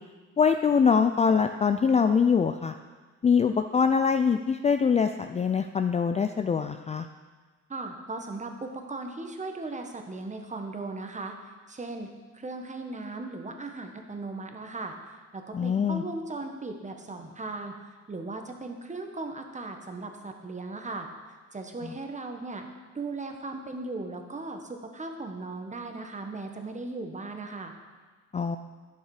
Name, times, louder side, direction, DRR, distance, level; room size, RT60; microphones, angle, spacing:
voice 1, 0.4-2.7 3.2-7.1 15.5-16.0 21.8-21.9 28.3-28.6, left 6 dB, 25° left, 7 dB, 0.3 m, -23 dB
voice 2, 7.7-11.3 11.7-21.1 21.5-22.7 22.9-27.7, right 3 dB, 25° right, 4 dB, 1.2 m, -37 dB
9.5 x 6.6 x 4.8 m, 1.4 s
cardioid pair, 90°, 30 cm